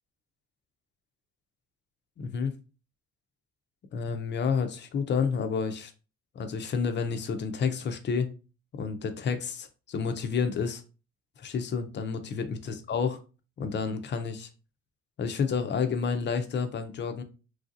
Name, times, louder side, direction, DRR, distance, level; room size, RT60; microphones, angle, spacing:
voice 1, 2.2-2.6 3.9-5.9 6.4-8.3 8.7-10.8 11.4-13.2 13.6-14.5 15.2-17.2, left 5 dB, 40° left, 0.4 m, -30 dB
3.1 x 2.6 x 2.5 m
cardioid pair, 125°, 30 cm